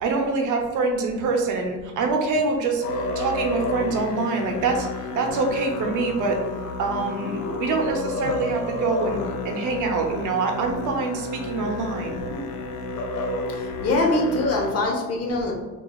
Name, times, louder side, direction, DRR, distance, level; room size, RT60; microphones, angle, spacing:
voice 1, 0.0-4.9 5.1-6.4 6.8-12.4, right 3 dB, 85° right, 3 dB, 0.7 m, -25 dB
Musical instrument, 2.8-14.7, left 2 dB, 90° left, 0.5 m, -30 dB
voice 2, 13.5-15.5, left 2 dB, 55° left, 0 dB, 0.9 m, -23 dB
4.0 x 2.4 x 2.3 m, 1.2 s
cardioid pair, 90°, 30 cm